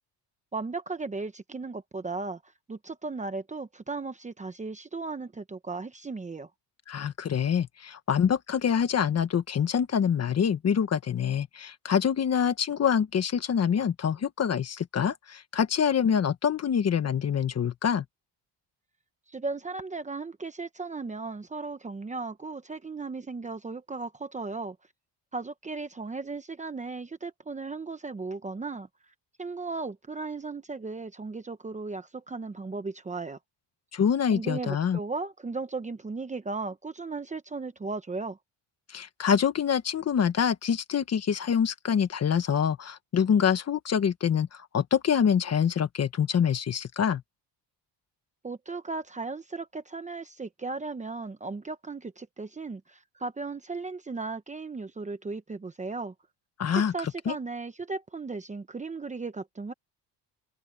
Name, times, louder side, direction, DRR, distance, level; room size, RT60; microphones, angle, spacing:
voice 1, 0.5-2.4 2.7-6.5 19.3-24.8 25.3-28.9 29.4-33.4 34.3-38.4 48.4-56.1 56.9-59.7, right 3 dB, 15° right, 0.9 m, -36 dB
voice 2, 6.9-18.0 33.9-35.0 38.9-47.2 56.6-56.9 57.3-57.4, left 7 dB, 35° left, 1.3 m, -25 dB
cardioid pair, 160°, 43 cm